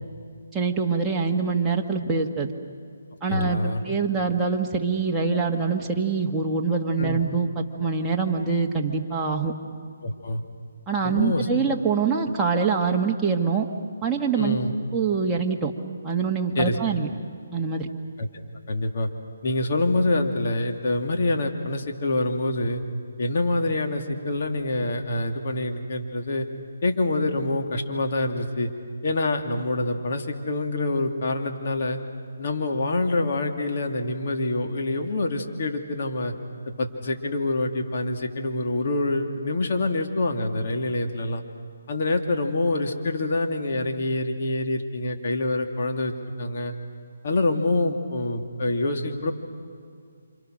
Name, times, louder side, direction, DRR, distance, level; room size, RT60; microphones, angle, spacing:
voice 1, 0.5-2.5 3.2-9.5 10.9-13.7 14.0-14.6 14.9-15.7 16.0-17.1 17.5-17.9, right 5 dB, 10° right, -3 dB, 1.8 m, -24 dB
voice 2, 3.3-3.9 7.0-7.2 10.0-10.4 11.0-11.5 14.3-14.7 16.6-16.8 18.2-18.3 18.7-19.1 19.4-22.8 23.2-26.5 26.8-28.7 29.0-32.0 32.4-36.3 36.8-41.4 41.9-46.7 47.2-49.3, left 2 dB, 50° left, 3 dB, 2.7 m, -26 dB
29.0 x 26.5 x 6.5 m, 2.2 s
hypercardioid pair, 155°, 0 cm